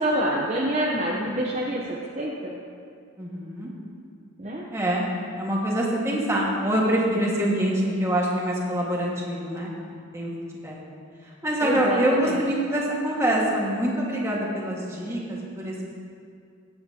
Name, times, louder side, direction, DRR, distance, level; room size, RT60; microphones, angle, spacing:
voice 1, 0.0-2.5 4.4-4.6 11.6-12.4, right 1 dB, 30° right, -3 dB, 0.8 m, -26 dB
voice 2, 3.2-3.7 4.7-5.0 5.4-9.7 10.1-10.3 10.6-10.8 11.2-15.9, right 1 dB, 15° right, -4 dB, 1.7 m, -25 dB
16.5 x 8.8 x 2.8 m, 2.3 s
head